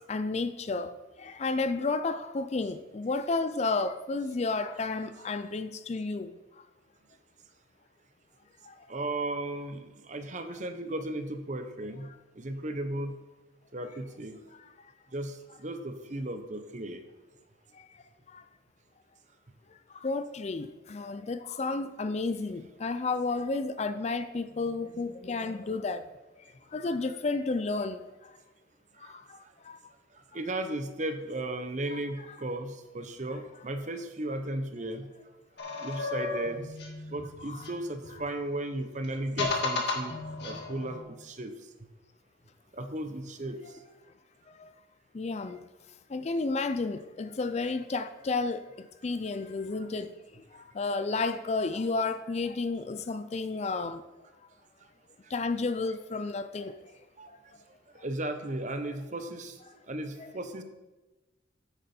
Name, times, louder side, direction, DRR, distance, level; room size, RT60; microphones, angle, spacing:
voice 1, 0.1-0.9 1.2-6.3 20.0-26.0 26.7-28.0 31.9-32.0 32.3-32.4 37.4-37.6 40.5-40.6 45.1-45.6 46.1-48.6 49.0-50.1 50.8-54.0 55.3-56.7 60.2-60.3, left 3 dB, 35° left, 0.4 m, -31 dB
voice 2, 8.9-12.1 12.4-13.2 13.7-14.4 15.1-17.0 30.3-35.1 35.8-36.7 37.1-40.2 40.4-41.5 42.7-43.6 57.2-57.3 58.0-59.6 59.9-60.6, right 1 dB, 40° right, 0.9 m, -35 dB
sound 1, 35.6-38.3 39.0-41.0, left 3 dB, 55° left, 1.8 m, -34 dB
9.3 x 8.7 x 4.3 m
head